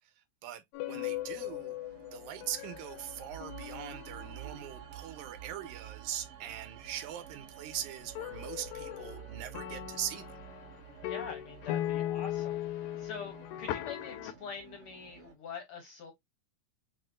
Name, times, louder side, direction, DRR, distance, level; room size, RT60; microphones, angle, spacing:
voice 1, 0.4-1.7 2.1-10.3, right 11 dB, 90° right, 2.1 m, -41 dB
sound 1, 0.7-4.9 8.2-14.3, left 13 dB, 85° left, 2.0 m, -38 dB
sound 2, 0.8-15.3, right 10 dB, 60° right, 2.2 m, -50 dB
voice 2, 11.1-12.6 13.0-16.1, left 5 dB, 70° left, 1.3 m, -44 dB
6.1 x 2.5 x 2.4 m
omnidirectional pair, 3.4 m